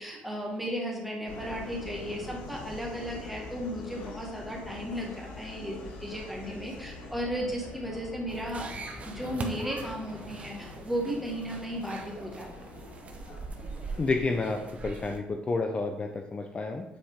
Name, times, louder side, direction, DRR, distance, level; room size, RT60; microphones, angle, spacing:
voice 1, 0.0-12.5, equal, 5° right, -1 dB, 1.8 m, -35 dB
Subway metro underground, 1.3-14.1, left 3 dB, 85° left, 1.3 m, -44 dB
sound 1, 8.3-15.2, right 4 dB, 40° right, 0.8 m, -42 dB
voice 2, 14.0-16.8, left 3 dB, 30° left, 4 dB, 0.6 m, -30 dB
7.3 x 4.3 x 3.6 m, 0.96 s
cardioid pair, 90°, 3 cm